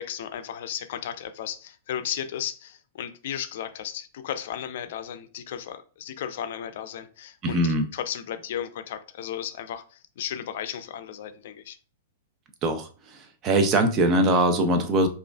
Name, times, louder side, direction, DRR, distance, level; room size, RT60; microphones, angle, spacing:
voice 1, 0.0-11.8, left 9 dB, 65° left, 0.4 m, -35 dB
voice 2, 7.4-7.9 12.6-13.2 13.4-15.1, right 1 dB, 30° right, 0.6 m, -22 dB
4.9 x 2.4 x 2.3 m
hypercardioid pair, 135°, 0 cm